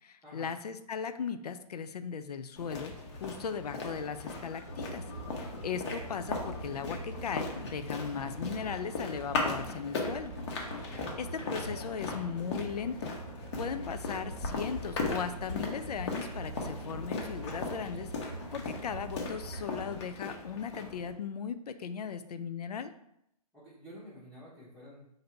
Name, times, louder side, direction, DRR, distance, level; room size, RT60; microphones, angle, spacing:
voice 1, 0.0-3.0 3.2-5.0 5.4-10.3 10.8-10.9 11.2-13.1 13.6-22.9, left 6 dB, 85° left, 10 dB, 0.5 m, -37 dB
sound 1, 2.6-21.1, left 3 dB, 50° left, 1.0 m, -38 dB
sound 2, 4.6-20.0, right 2 dB, 40° right, 0.7 m, -44 dB
voice 2, 23.5-25.2, equal, 5° left, -10 dB, 0.9 m, -50 dB
4.0 x 2.6 x 4.4 m, 0.77 s
hypercardioid pair, 145°, 20 cm